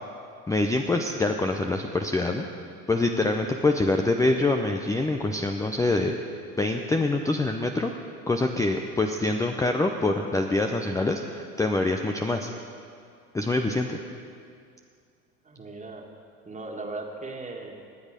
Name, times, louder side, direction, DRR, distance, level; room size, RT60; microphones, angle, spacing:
voice 1, 0.5-2.4 2.9-6.1 6.6-7.9 8.3-12.5 13.3-14.0, left 2 dB, 5° left, 4 dB, 0.6 m, -25 dB
voice 2, 15.4-16.0 16.5-17.7, right 3 dB, 15° right, 2 dB, 1.9 m, -37 dB
20.0 x 8.1 x 5.2 m, 2.3 s
hypercardioid pair, 85°, 46 cm